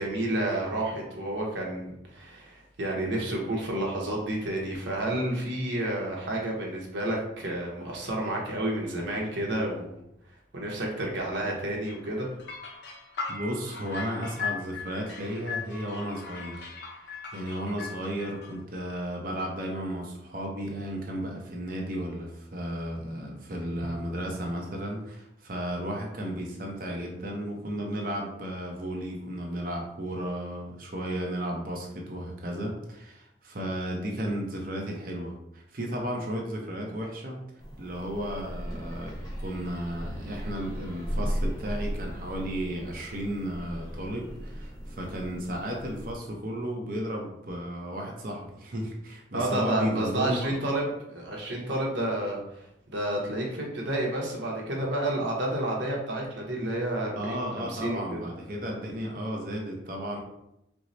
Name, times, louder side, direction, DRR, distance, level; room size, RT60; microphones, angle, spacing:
voice 1, 0.0-10.0 10.5-12.3 49.3-52.6 52.9-58.2, right 1 dB, 80° right, -2 dB, 0.9 m, -30 dB
sound 1, 11.9-18.6, left 5 dB, 70° left, 0.7 m, -39 dB
voice 2, 13.3-16.7 17.3-37.4 37.8-50.5 57.2-60.2, equal, 50° right, 0 dB, 0.7 m, -34 dB
sound 2, 37.6-46.2, equal, 20° left, 0.8 m, -36 dB
4.5 x 2.0 x 2.6 m, 0.81 s
head